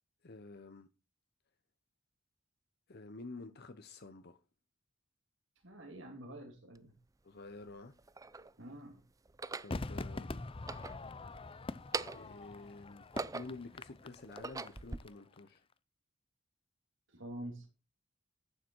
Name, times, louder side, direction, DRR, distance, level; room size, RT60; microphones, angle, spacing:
voice 1, 0.2-0.9 2.9-4.4 7.2-8.0 9.6-10.3 12.1-13.1 13.3-15.7, left 3 dB, 55° left, 0.9 m, -50 dB
voice 2, 5.6-6.9 8.6-9.0 17.1-17.7, right 1 dB, 70° right, 2.8 m, -47 dB
sound 1, 6.8-6.9 7.7-8.5 9.3-9.8 10.5-11.4 11.8-12.4 12.9-13.7 14.2-15.0, right 4 dB, 15° right, 0.5 m, -41 dB
Crowd / Fireworks, 9.7-15.1 15.4-15.5, left 2 dB, 25° left, 0.6 m, -44 dB
11.5 x 9.0 x 4.6 m
head